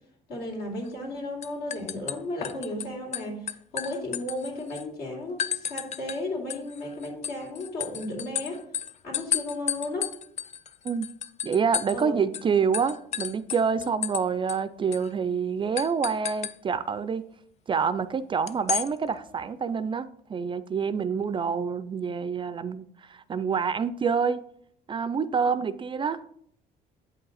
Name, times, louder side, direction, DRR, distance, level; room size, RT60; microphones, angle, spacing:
voice 1, 0.3-3.5 3.7-8.6 9.0-10.1 11.9-12.1 13.8-13.9 25.5-25.6, left 1 dB, 70° left, 2.7 m, -34 dB
sound 1, 0.8-1.1 1.4-2.8 3.1-4.8 5.4-6.2 6.5-12.0 12.3-12.5 12.7-14.2 14.5-14.6 14.9-15.1 15.8-16.5 18.5-18.9, left 9 dB, 40° left, 0.4 m, -32 dB
voice 2, 11.4-17.2 17.7-24.4 24.9-26.2, right 6 dB, 30° right, 0.3 m, -27 dB
8.2 x 5.5 x 4.0 m
cardioid pair, 110°, 17 cm